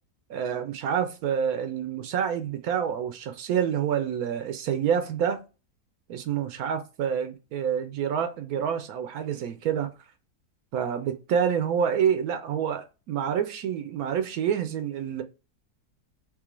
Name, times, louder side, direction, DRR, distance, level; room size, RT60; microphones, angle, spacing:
voice 1, 0.3-5.4 6.1-9.9 10.7-15.2, right 8 dB, 75° right, 1.0 m, -27 dB
3.7 x 3.1 x 3.0 m
omnidirectional pair, 1.7 m